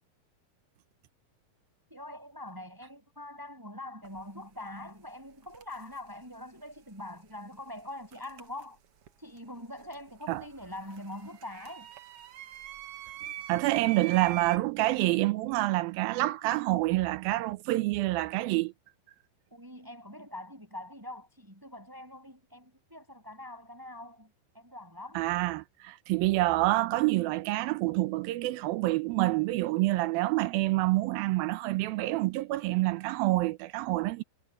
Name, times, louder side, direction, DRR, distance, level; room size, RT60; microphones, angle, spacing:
voice 1, 1.9-8.8 9.2-11.9 19.5-25.2, left 1 dB, 5° right, 7.2 m, -44 dB
pressure cooker, 4.0-4.2 5.4-6.0 8.1-9.1 9.4-14.6, right 11 dB, 65° right, 1.5 m, -44 dB
voice 2, 13.5-18.7 25.2-34.2, right 18 dB, 80° right, 2.5 m, -27 dB
omnidirectional pair, 4.3 m